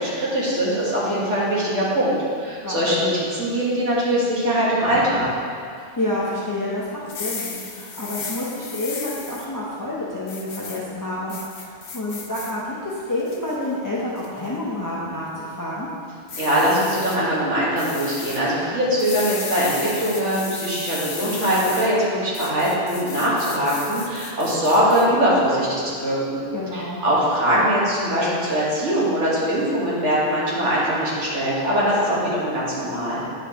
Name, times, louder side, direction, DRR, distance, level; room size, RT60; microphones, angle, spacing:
voice 1, 0.0-5.3 16.4-26.4 26.7-33.2, equal, 70° right, -7 dB, 1.9 m, -22 dB
voice 2, 5.8-15.9 26.5-27.0 32.1-32.3, left 1 dB, 20° left, -7 dB, 0.7 m, -29 dB
sound 1, 7.0-9.5 10.3-10.8 11.3-12.5 13.0-13.6 14.2-14.5 16.3-17.2 17.8-18.4 19.0-21.9 22.3-25.0, left 5 dB, 55° left, 0.8 m, -34 dB
9.1 x 5.2 x 3.0 m, 2.2 s
omnidirectional pair, 1.3 m